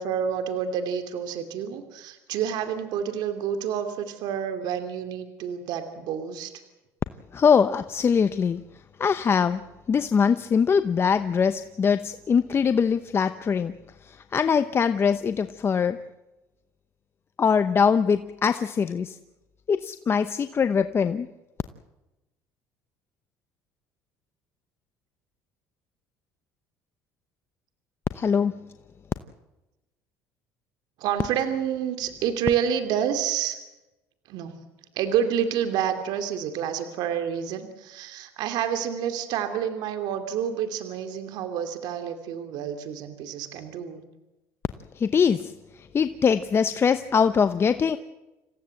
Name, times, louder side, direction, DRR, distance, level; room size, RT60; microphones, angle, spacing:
voice 1, 0.0-6.5 31.0-33.6 34.3-34.5 34.9-44.0, right 8 dB, 70° right, 8 dB, 2.6 m, -28 dB
voice 2, 7.3-8.6 9.0-9.6 9.9-13.7 14.1-16.0 17.4-19.2 19.7-21.3 28.1-28.6 45.0-48.0, left 6 dB, 35° left, 11 dB, 0.9 m, -22 dB
27.5 x 16.0 x 7.8 m, 1.0 s
supercardioid pair, 90°, 8 cm